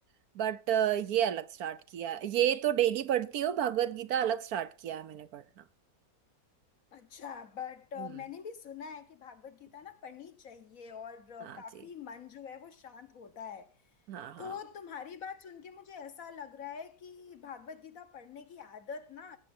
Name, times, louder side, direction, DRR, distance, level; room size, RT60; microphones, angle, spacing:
voice 1, 0.3-5.4 8.0-8.1 11.5-11.6 14.1-14.5, right 10 dB, 70° right, 1.2 m, -30 dB
voice 2, 6.9-13.7 14.4-19.4, left 7 dB, 60° left, 1.5 m, -45 dB
17.0 x 8.8 x 4.3 m
omnidirectional pair, 1.7 m